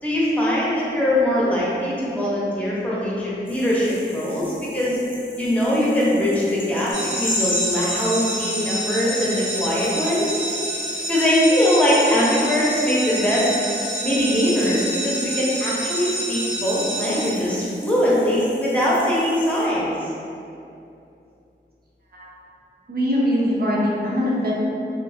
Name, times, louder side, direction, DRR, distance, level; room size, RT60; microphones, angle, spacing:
voice 1, 0.0-5.0 5.4-10.4 11.1-13.5 14.0-19.9, equal, 5° left, -7 dB, 0.8 m, -21 dB
sound 1, 3.5-19.7, left 1 dB, 45° left, 0.7 m, -36 dB
sound 2, 6.9-17.3, right 1 dB, 90° right, 1.2 m, -28 dB
voice 2, 22.9-24.5, equal, 50° right, -5 dB, 0.7 m, -22 dB
2.9 x 2.4 x 2.7 m, 2.6 s
wide cardioid pair, 45°, 20 cm